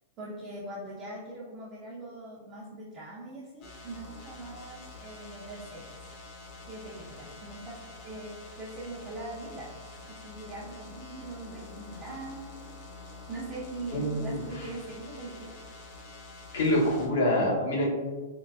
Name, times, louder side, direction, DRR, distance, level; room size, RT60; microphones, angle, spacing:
voice 1, 0.2-6.0 6.7-12.6 13.3-15.5, right 2 dB, 30° right, -8 dB, 0.7 m, -41 dB
sound 1, 3.6-17.1, left 3 dB, 40° left, 0.7 m, -47 dB
voice 2, 13.9-14.4 16.5-17.9, left 1 dB, 70° left, -3 dB, 0.9 m, -26 dB
3.7 x 2.2 x 2.3 m, 1.4 s
hypercardioid pair, 130°, 0 cm